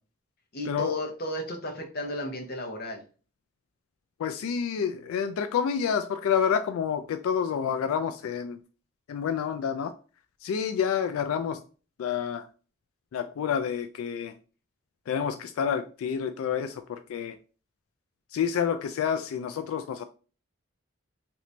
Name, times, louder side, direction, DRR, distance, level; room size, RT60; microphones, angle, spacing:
voice 1, 0.5-3.0, left 1 dB, 45° left, 3 dB, 0.7 m, -33 dB
voice 2, 4.2-8.6 9.1-9.9 10.4-11.6 12.0-12.4 13.1-14.3 15.1-17.4 18.3-20.0, left 7 dB, 90° left, 8 dB, 0.3 m, -28 dB
2.9 x 2.6 x 3.2 m, 0.37 s
head